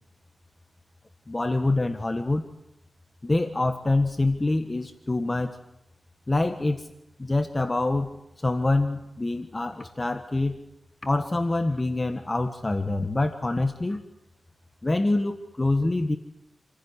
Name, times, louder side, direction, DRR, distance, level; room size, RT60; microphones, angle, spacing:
voice 1, 1.3-2.5 3.2-5.6 6.3-6.9 7.2-10.6 11.0-14.0 14.8-16.2, left 2 dB, 25° left, 7 dB, 1.5 m, -25 dB
28.5 x 16.0 x 9.8 m, 0.83 s
wide cardioid pair, 115°, 0 cm